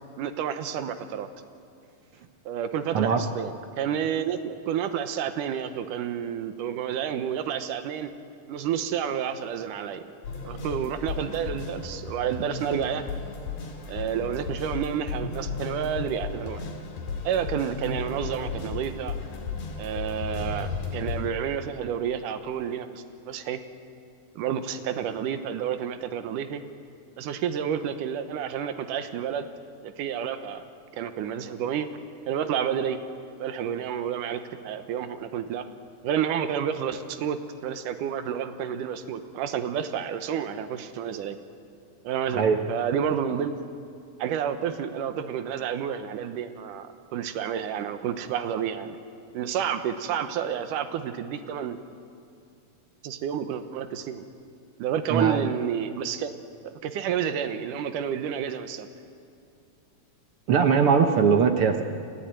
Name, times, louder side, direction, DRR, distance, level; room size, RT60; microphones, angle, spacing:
voice 1, 0.2-1.3 2.5-8.1 8.5-10.0 10.4-13.0 13.9-16.6 17.2-19.1 19.8-23.6 24.3-26.6 27.2-29.4 29.8-30.7 30.9-31.9 32.3-33.0 33.4-35.7 36.0-41.4 42.0-42.4 42.7-43.5 44.2-49.0 49.3-51.8 53.0-54.2 54.8-56.3 56.6-58.9, right 8 dB, 85° right, 9 dB, 2.6 m, -30 dB
sound 1, 10.2-21.3, left 4 dB, 90° left, 4.3 m, -34 dB
voice 2, 55.1-55.5 60.5-61.8, right 6 dB, 65° right, 6 dB, 1.4 m, -21 dB
29.0 x 13.5 x 9.0 m, 2.5 s
omnidirectional pair, 3.6 m